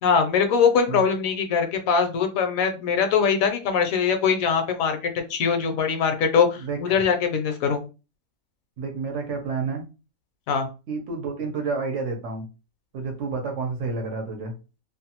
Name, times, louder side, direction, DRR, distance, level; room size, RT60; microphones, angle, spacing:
voice 1, 0.0-7.8 10.5-10.7, left 6 dB, 75° left, 6 dB, 1.0 m, -22 dB
voice 2, 6.6-7.0 8.8-9.8 10.9-12.5 12.9-14.5, right 4 dB, 65° right, 3 dB, 0.9 m, -29 dB
2.6 x 2.2 x 2.8 m, 0.31 s
omnidirectional pair, 1.5 m